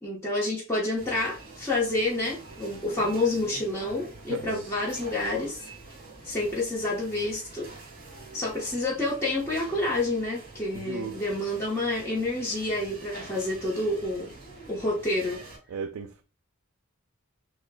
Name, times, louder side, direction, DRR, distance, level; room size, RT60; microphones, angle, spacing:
voice 1, 0.0-5.6 6.2-7.7 8.3-14.3 14.7-15.4, left 2 dB, 15° left, 1.0 m, -28 dB
sound 1, 1.0-15.6, right 3 dB, 40° right, 1.3 m, -46 dB
voice 2, 10.7-11.2 15.7-16.2, right 6 dB, 80° right, 0.4 m, -35 dB
6.2 x 2.2 x 2.2 m
head